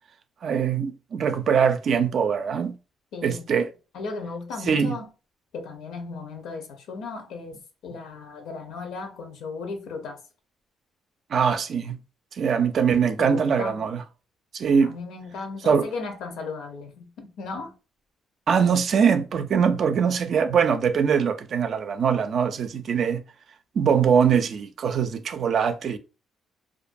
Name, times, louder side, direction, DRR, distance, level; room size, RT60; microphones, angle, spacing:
voice 1, 0.4-2.7 3.2-3.7 4.6-5.0 11.3-12.0 12.4-14.0 14.5-14.9 15.6-15.9 18.5-23.2 23.8-26.0, right 7 dB, 60° right, 0.4 m, -22 dB
voice 2, 3.9-5.1 5.5-7.6 7.8-10.2 13.2-13.7 14.8-17.7, left 4 dB, 85° left, 0.7 m, -36 dB
2.5 x 2.2 x 2.5 m
cardioid pair, 90°, 0 cm